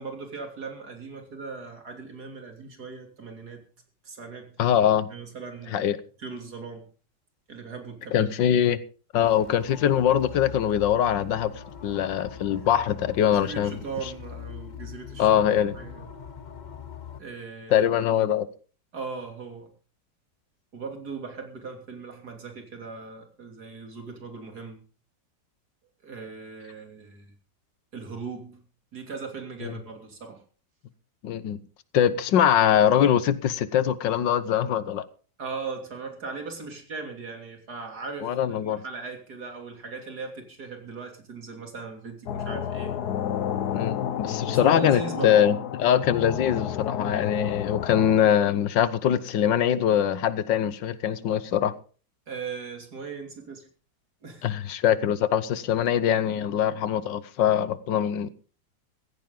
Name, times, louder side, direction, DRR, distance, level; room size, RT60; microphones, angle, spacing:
voice 1, 0.0-3.7 4.0-4.6 5.1-5.9 6.2-6.8 7.5-8.3 13.3-15.3 15.7-16.1 17.2-17.9 18.9-19.7 20.7-24.8 26.0-27.3 27.9-28.6 28.9-30.4 35.4-42.9 44.5-45.4 52.3-53.7 54.2-54.5, right 4 dB, 60° right, 3.5 m, -38 dB
voice 2, 4.6-5.1 5.7-6.0 8.1-8.8 9.1-11.5 11.8-13.8 15.2-15.7 17.7-18.5 31.2-31.6 31.9-35.0 38.2-38.8 43.7-51.7 54.4-58.3, left 10 dB, 85° left, 1.6 m, -23 dB
sound 1, 9.2-17.2, left 8 dB, 40° left, 0.7 m, -42 dB
sound 2, 42.3-48.2, left 9 dB, 65° left, 1.3 m, -30 dB
15.5 x 15.0 x 3.8 m
omnidirectional pair, 1.9 m